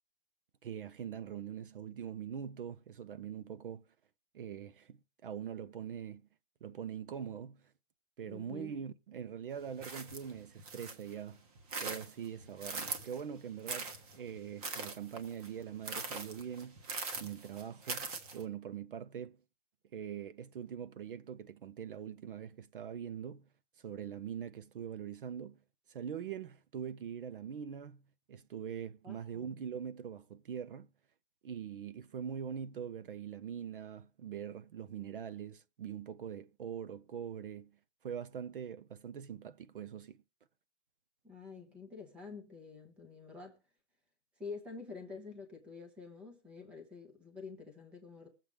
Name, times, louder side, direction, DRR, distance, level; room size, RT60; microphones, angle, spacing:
voice 1, 0.6-3.8 4.3-6.2 6.6-7.7 8.2-11.4 11.8-16.8 17.2-19.4 19.9-23.5 23.8-25.6 25.9-28.0 28.3-30.9 31.4-37.7 38.0-40.2, right 8 dB, 45° right, 0.6 m, -43 dB
voice 2, 8.3-8.7 29.0-29.4 41.2-43.6 44.4-48.3, left 4 dB, 5° right, 0.6 m, -48 dB
sound 1, 9.8-11.1 11.5-13.2 13.7-18.4, right 4 dB, 30° right, 1.4 m, -41 dB
21.5 x 7.5 x 3.3 m
hypercardioid pair, 165°, 36 cm